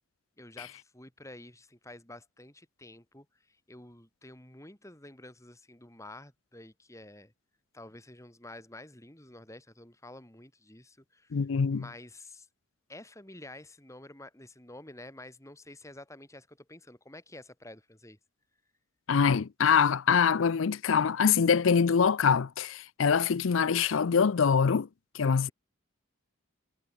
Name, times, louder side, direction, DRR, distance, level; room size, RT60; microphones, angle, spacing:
voice 1, 0.4-7.3 7.7-11.4 11.7-12.5 12.9-18.2 25.3-25.5, left 1 dB, 15° left, 3.3 m, -49 dB
voice 2, 11.3-11.9 19.1-24.9 25.1-25.5, left 6 dB, 65° left, 0.5 m, -24 dB
head